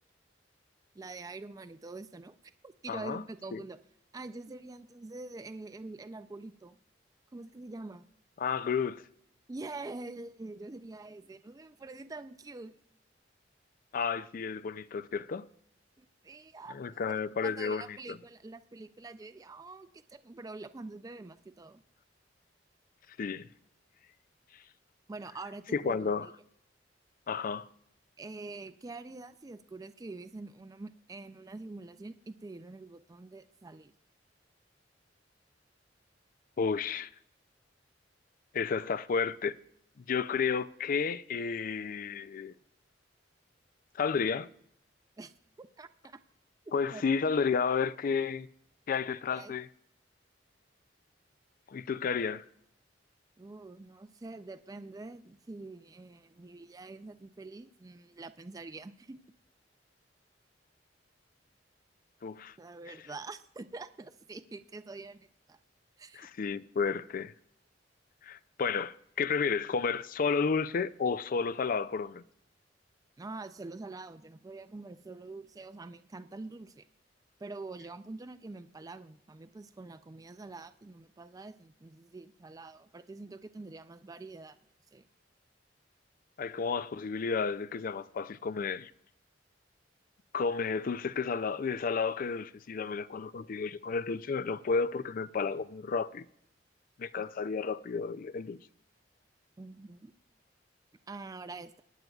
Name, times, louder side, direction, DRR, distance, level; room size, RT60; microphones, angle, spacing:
voice 1, 0.9-2.4 2.6-3.8 4.1-6.8 7.3-8.0 9.5-12.8 16.0-17.0 17.4-21.8 25.1-26.3 28.2-33.9 45.2-45.3 45.6-46.2 46.9-47.0 49.3-49.5 53.4-59.2 62.6-65.6 66.0-66.3 73.2-76.9 77.4-84.6 84.9-85.0 97.2-97.3 99.6-100.1 101.1-101.8, right 3 dB, 20° right, 0.4 m, -45 dB
voice 2, 2.9-3.2 3.5-3.6 8.4-9.0 13.9-15.5 16.7-18.2 23.2-23.5 25.7-26.3 27.3-27.7 36.6-37.1 38.5-39.6 40.1-42.5 43.9-44.5 46.7-48.5 48.9-49.7 51.7-52.4 62.2-62.5 66.1-67.3 68.2-72.2 86.4-88.9 90.3-96.3 97.0-98.6, left 5 dB, 50° left, 0.4 m, -32 dB
22.5 x 9.2 x 2.3 m
head